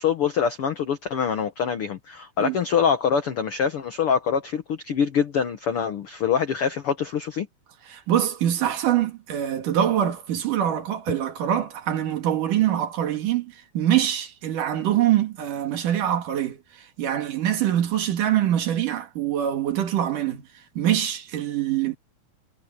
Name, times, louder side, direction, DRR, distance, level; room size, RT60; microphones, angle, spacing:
voice 1, 0.0-7.5, left 7 dB, 75° left, 1.2 m, -24 dB
voice 2, 7.9-16.6 17.0-20.4 20.8-22.0, right 11 dB, 65° right, 3.2 m, -24 dB
omnidirectional pair, 4.3 m